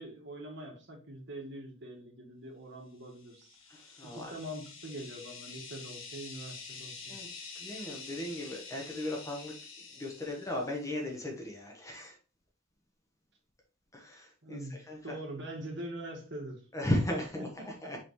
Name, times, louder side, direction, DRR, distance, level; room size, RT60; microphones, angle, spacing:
voice 1, 0.0-3.6 4.0-7.2 14.4-14.7 15.0-16.6 17.4-18.0, right 1 dB, 60° right, 0 dB, 1.8 m, -43 dB
sound 1, 3.2-11.0, left 4 dB, 80° left, 1.5 m, -47 dB
voice 2, 3.7-4.3 7.0-7.3 7.5-9.5 9.9-12.2 13.9-14.6 14.9-15.2 16.7-18.0, left 1 dB, 15° left, 0 dB, 1.3 m, -36 dB
5.5 x 5.4 x 3.1 m, 0.35 s
head